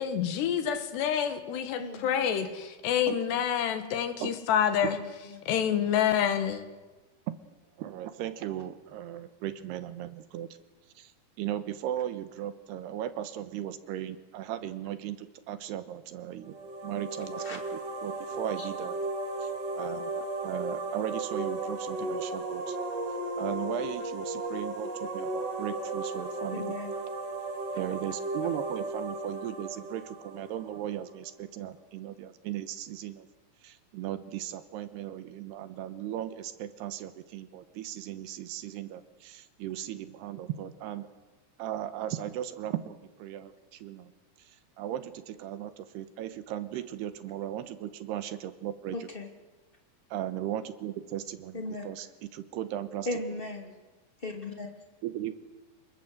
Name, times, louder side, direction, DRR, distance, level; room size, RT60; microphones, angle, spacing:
voice 1, 0.0-5.0 5.5-6.6, left 9 dB, 75° left, 9 dB, 3.7 m, -27 dB
voice 2, 1.8-2.5 4.9-5.0 5.3-5.4 17.4-17.6 18.6-18.7 26.5-26.9 48.9-49.3 51.5-51.9 53.1-53.7 54.2-54.7, left 2 dB, 15° left, 4 dB, 2.0 m, -37 dB
voice 3, 7.8-10.5 11.0-11.1 11.4-16.6 16.8-19.0 19.4-22.8 23.4-26.8 27.7-33.3 33.6-41.1 41.6-42.9 43.2-44.1 44.4-49.1 50.1-53.1 55.0-55.3, right 11 dB, 75° right, 12 dB, 3.1 m, -37 dB
sound 1, 16.4-31.1, right 2 dB, 45° right, 2.8 m, -35 dB
26.5 x 21.5 x 7.9 m, 1.2 s
omnidirectional pair, 4.9 m